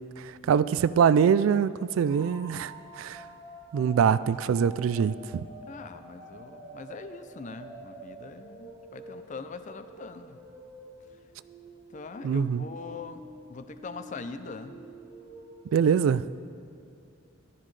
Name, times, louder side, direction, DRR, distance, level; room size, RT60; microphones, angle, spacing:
voice 1, 0.2-2.7 3.0-3.2 3.7-5.2 12.2-12.6 15.7-16.2, right 7 dB, 75° right, 17 dB, 0.3 m, -23 dB
sound 1, 2.1-15.8, right 1 dB, 25° right, 1.8 m, -48 dB
voice 2, 5.7-10.4 11.9-14.7, left 4 dB, 35° left, 10 dB, 0.5 m, -42 dB
13.5 x 12.0 x 3.2 m, 2.5 s
head